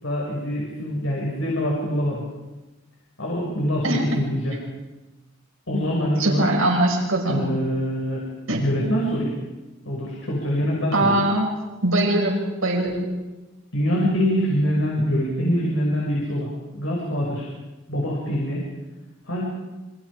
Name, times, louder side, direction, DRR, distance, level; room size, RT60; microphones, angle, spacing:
voice 1, 0.0-2.2 3.2-4.6 5.7-6.5 7.3-8.3 8.6-9.3 9.8-11.2 13.7-16.5 16.7-17.5 17.9-18.6 19.3-19.4, equal, 65° left, -3 dB, 6.2 m, -24 dB
voice 2, 3.8-4.2 6.2-7.5 8.5-8.9 10.9-11.5 11.8-13.1, right 1 dB, 80° right, 1 dB, 6.2 m, -22 dB
29.5 x 26.0 x 5.0 m, 1.1 s
head